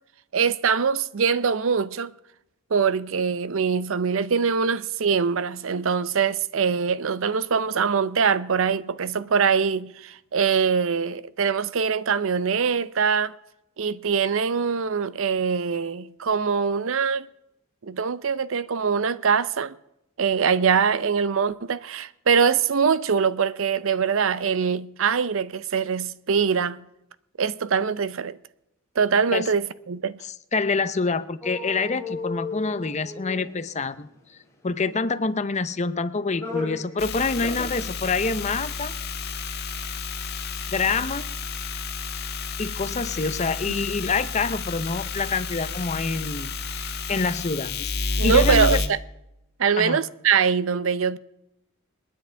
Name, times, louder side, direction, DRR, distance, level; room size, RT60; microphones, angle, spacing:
voice 1, 0.3-2.1 2.7-13.3 13.8-17.3 17.8-19.7 20.2-26.8 27.4-28.4 29.0-30.2 48.2-49.0 49.6-51.2, right 6 dB, 65° right, 0.6 m, -23 dB
voice 2, 30.2-34.1 34.6-38.9 40.7-41.3 42.6-48.8 49.8-50.0, left 4 dB, 35° left, 0.7 m, -26 dB
sound 1, 31.4-34.0 35.2-35.8 36.1-37.0 37.3-37.8 38.1-38.2, left 3 dB, 15° left, 3.0 m, -34 dB
sound 2, 37.0-48.9, left 4 dB, 50° left, 1.4 m, -30 dB
28.0 x 9.9 x 3.4 m
head